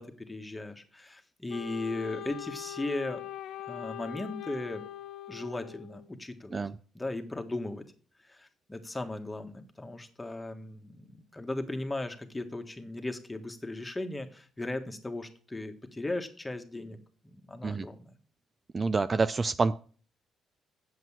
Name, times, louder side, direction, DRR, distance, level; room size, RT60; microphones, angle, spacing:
voice 1, 0.0-3.2 3.7-4.8 5.3-6.6 6.9-7.8 8.2-17.0 17.2-18.1, left 2 dB, 15° left, 1.5 m, -37 dB
Wind instrument woodwind instrument, 1.5-6.1, left 12 dB, 80° left, 0.5 m, -42 dB
voice 2, 18.7-19.8, right 4 dB, 30° right, 0.4 m, -27 dB
7.9 x 7.6 x 7.4 m
cardioid pair, 90°, 0 cm